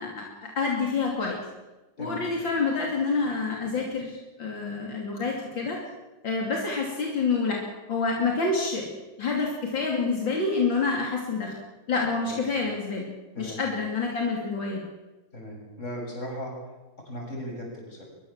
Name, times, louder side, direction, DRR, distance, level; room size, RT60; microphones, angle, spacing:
voice 1, 0.0-1.4 2.0-5.8 6.2-7.6 7.9-8.9 9.2-11.6 11.9-13.1 13.4-14.8, left 4 dB, 75° left, -1 dB, 3.7 m, -27 dB
voice 2, 15.3-16.5 17.1-18.1, equal, 35° left, -1 dB, 7.7 m, -37 dB
23.0 x 22.5 x 7.4 m, 1.1 s
omnidirectional pair, 2.1 m